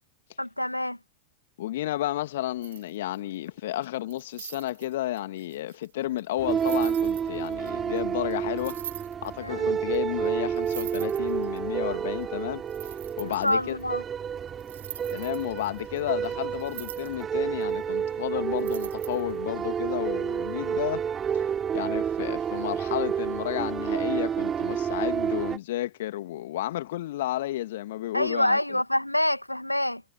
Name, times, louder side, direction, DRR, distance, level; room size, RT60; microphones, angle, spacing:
voice 1, 0.4-1.0 9.4-9.7 13.2-14.0 28.1-30.0, left 1 dB, 85° left, 2.1 m, -26 dB
voice 2, 1.6-8.8 9.2-12.6 13.2-13.8 15.1-21.0 21.3-21.4 21.7-28.8, left 14 dB, 55° left, 2.2 m, -32 dB
sound 1, 2.6-3.4 3.8-7.7 8.0-8.1 8.3-8.4 8.6-9.4 9.9-10.0 10.3-10.4 10.6-11.6 12.2-12.3 12.7-13.8 14.6-17.2 17.6-17.7 18.6-19.4, right 11 dB, 60° right, 3.1 m, -43 dB
sound 2, 6.4-25.6, right 8 dB, 20° right, 3.9 m, -30 dB
figure-of-eight pair, 90°, 0 cm